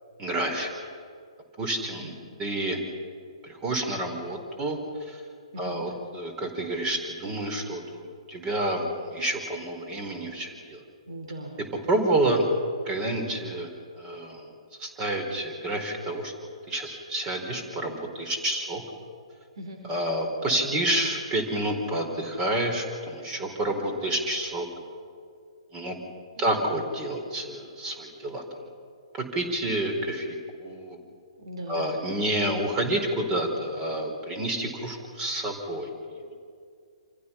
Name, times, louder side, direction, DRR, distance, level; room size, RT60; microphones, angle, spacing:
voice 1, 0.2-0.9 1.6-2.1 2.4-2.8 3.4-5.2 5.6-10.8 11.9-12.5 12.9-13.7 14.0-14.5 14.8-16.3 16.7-18.8 19.9-24.7 25.7-26.0 26.4-28.4 29.1-31.0 31.7-35.9, right 1 dB, 20° right, 5 dB, 4.3 m, -29 dB
voice 2, 5.5-5.9 11.1-11.5 19.5-19.8 26.3-26.6 31.4-31.8, right 1 dB, 60° right, 2 dB, 5.1 m, -39 dB
28.5 x 27.5 x 5.8 m, 2.2 s
figure-of-eight pair, 125°, 3 cm